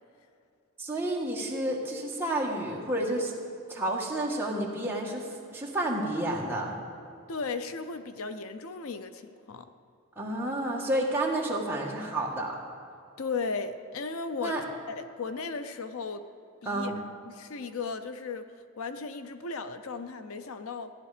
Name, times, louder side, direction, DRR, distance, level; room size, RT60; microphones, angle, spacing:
voice 1, 0.8-3.3 3.7-6.8 10.2-12.6 14.4-14.6 16.6-17.0, right 1 dB, 10° right, -3 dB, 1.6 m, -30 dB
voice 2, 7.3-9.7 13.2-14.5 14.9-16.2 16.6-16.9 17.3-18.4 18.8-20.9, left 4 dB, 70° left, 10 dB, 0.6 m, -36 dB
15.5 x 10.5 x 5.0 m, 2.6 s
head